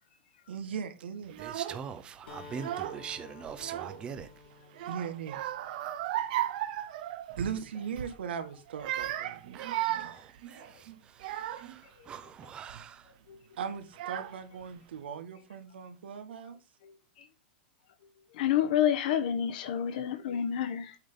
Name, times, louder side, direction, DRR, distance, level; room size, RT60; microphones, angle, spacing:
voice 1, 0.5-1.4 4.9-5.4 7.4-9.6 13.6-16.6, right 7 dB, 85° right, 2.0 m, -38 dB
Child speech kid speaking / Crying sobbing, 1.3-1.8 2.5-3.1 3.4-4.3 4.7-7.6 7.9-8.2 8.7-11.8 12.4-12.8 13.6-13.7 13.9-14.6, right 13 dB, 50° right, 1.1 m, -36 dB
voice 2, 1.4-4.3 6.7-6.8 9.5-13.2, right 7 dB, 15° right, 0.8 m, -43 dB
Acoustic guitar, 2.3-6.1, left 5 dB, 85° left, 3.0 m, -52 dB
voice 3, 18.4-20.9, left 10 dB, 55° left, 1.3 m, -28 dB
8.6 x 4.0 x 5.1 m
supercardioid pair, 160°, 6 cm